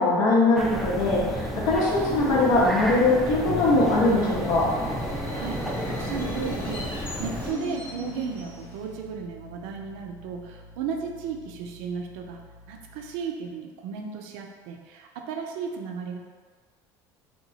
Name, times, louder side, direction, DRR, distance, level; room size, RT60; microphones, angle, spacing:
voice 1, 0.0-4.6, left 2 dB, 80° left, -5 dB, 0.8 m, -21 dB
sound 1, 0.6-7.5, equal, ahead, 0.3 m, -33 dB
Subway metro underground, 1.3-9.0, left 1 dB, 20° left, 0.7 m, -37 dB
Bass guitar, 3.5-13.3, left 3 dB, 60° left, 0.5 m, -42 dB
voice 2, 5.3-16.2, right 6 dB, 75° right, 3 dB, 0.4 m, -35 dB
2.9 x 2.2 x 2.7 m, 1.5 s
supercardioid pair, 120°, 10 cm